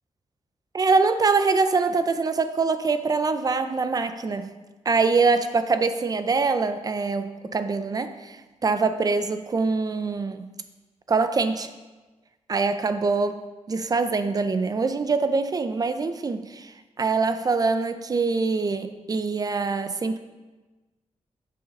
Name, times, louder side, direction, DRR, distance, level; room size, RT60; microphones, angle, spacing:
voice 1, 0.7-4.5 4.9-10.5 11.1-11.7 12.5-13.4 13.7-20.2, right 4 dB, 30° right, 10 dB, 0.5 m, -24 dB
6.8 x 6.4 x 5.3 m, 1.2 s
wide cardioid pair, 170°, 12 cm